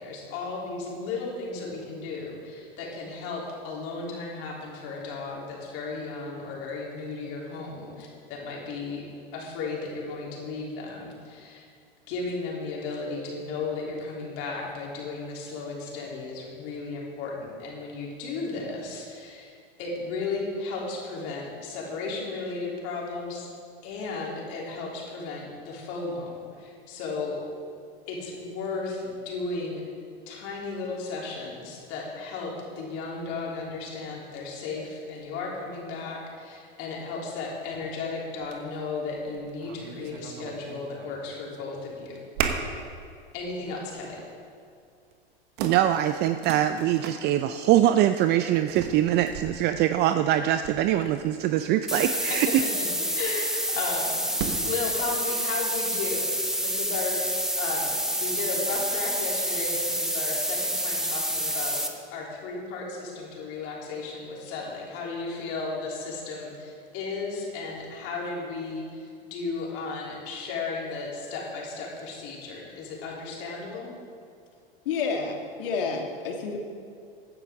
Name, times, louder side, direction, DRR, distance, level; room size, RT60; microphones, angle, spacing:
voice 1, 0.0-9.1 9.3-11.7 12.1-19.5 19.8-23.5 23.8-27.4 28.1-29.9 30.3-42.2 43.3-44.2 52.3-52.4 53.0-54.2 54.4-56.3 56.6-61.8 62.1-73.9, left 3 dB, 50° left, -3 dB, 3.4 m, -35 dB
sound 1, 37.6-37.7 38.4-38.6 39.1-41.2 41.5-41.9 42.3-42.8 43.3-43.4 44.0-44.3 45.1-45.2 45.6-47.2 48.7-51.6 53.7-54.8, right 7 dB, 60° right, 1.3 m, -36 dB
voice 2, 45.6-52.6, right 12 dB, 35° right, 10 dB, 0.4 m, -23 dB
sound 2, 51.9-61.9, equal, ahead, 1.0 m, -28 dB
voice 3, 74.9-76.6, left 5 dB, 70° left, 2 dB, 1.8 m, -29 dB
15.5 x 9.8 x 3.7 m, 2.3 s
hypercardioid pair, 90°, 29 cm